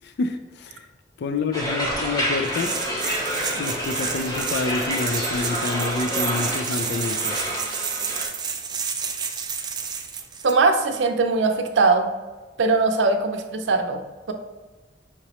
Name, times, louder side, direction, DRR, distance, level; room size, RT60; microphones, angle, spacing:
voice 1, 0.0-0.8 1.2-2.7 3.6-7.3, left 4 dB, 60° left, 7 dB, 0.3 m, -28 dB
sound 1, 1.5-8.3, equal, 20° left, 1.0 m, -28 dB
sound 2, 2.4-10.5, right 6 dB, 25° right, 0.4 m, -30 dB
voice 2, 10.4-12.1 12.6-14.0, right 3 dB, 80° right, 5 dB, 0.5 m, -20 dB
5.7 x 2.9 x 2.9 m, 1.3 s
head